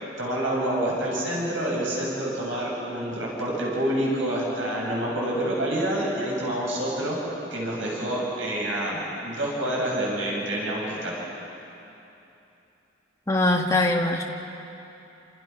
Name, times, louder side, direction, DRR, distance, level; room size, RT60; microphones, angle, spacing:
voice 1, 0.2-7.2 7.5-11.1, right 1 dB, 75° right, -4 dB, 7.3 m, -27 dB
voice 2, 13.3-14.2, left 2 dB, 15° left, 0 dB, 1.9 m, -22 dB
29.0 x 28.0 x 6.0 m, 2.9 s
head